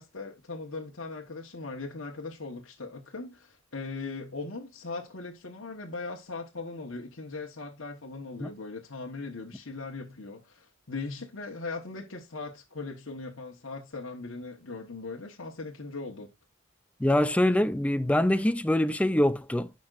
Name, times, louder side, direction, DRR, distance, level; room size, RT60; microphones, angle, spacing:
voice 1, 0.0-16.3, left 3 dB, 70° left, 1.2 m, -39 dB
voice 2, 17.0-19.7, left 1 dB, 5° left, 0.4 m, -24 dB
13.5 x 5.3 x 2.5 m
head